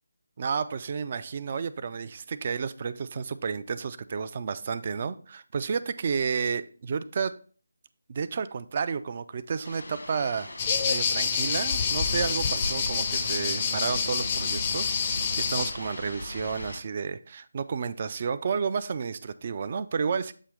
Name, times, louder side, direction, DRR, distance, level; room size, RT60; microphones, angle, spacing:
voice 1, 0.4-7.4 8.1-10.5 10.9-20.3, right 6 dB, 35° right, 0.3 m, -31 dB
sound 1, 9.6-16.8, left 1 dB, 85° left, 1.3 m, -39 dB
sound 2, 10.6-15.7, left 6 dB, 25° left, 0.5 m, -27 dB
7.4 x 2.9 x 4.9 m
figure-of-eight pair, 165°, 0 cm